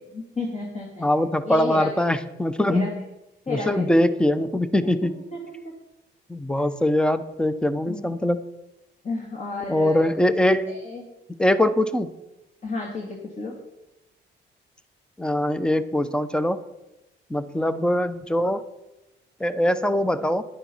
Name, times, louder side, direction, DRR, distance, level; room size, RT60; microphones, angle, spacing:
voice 1, 0.0-1.1 1.4-2.0 2.7-2.9 3.5-4.0 5.3-5.6 7.9-8.2 9.0-10.2 10.7-11.0 12.6-13.6, left 2 dB, 40° left, -1 dB, 2.8 m, -32 dB
voice 2, 1.0-3.1 3.5-5.2 6.3-8.4 9.7-10.8 11.4-12.1 15.2-16.6 17.3-18.6 19.4-20.4, left 1 dB, 5° left, 13 dB, 0.8 m, -22 dB
11.0 x 8.9 x 5.6 m, 0.96 s
cardioid pair, 90°, 20 cm